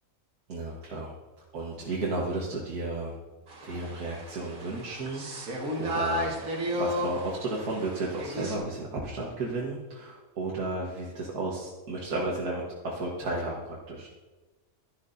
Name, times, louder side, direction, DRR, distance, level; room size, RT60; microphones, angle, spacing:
voice 1, 0.5-1.1 1.5-3.2 3.6-5.5 5.8-14.1, right 2 dB, 90° right, -4 dB, 1.7 m, -33 dB
sound 1, 3.5-8.6, equal, 70° right, 2.0 m, -33 dB
12.0 x 10.5 x 2.6 m, 1.2 s
omnidirectional pair, 1.6 m